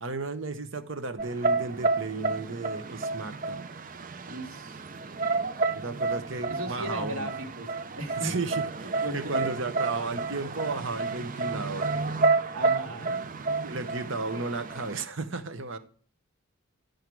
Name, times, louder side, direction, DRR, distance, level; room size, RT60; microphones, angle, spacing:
voice 1, 0.0-3.7 5.7-7.3 8.2-11.9 13.6-15.8, right 3 dB, 60° right, 0.9 m, -34 dB
sound 1, 1.2-15.0, right 3 dB, 40° right, 0.5 m, -30 dB
voice 2, 4.3-4.8 6.5-8.3 9.0-9.6 12.5-13.2, right 1 dB, 75° right, 2.0 m, -37 dB
12.0 x 6.5 x 4.7 m
head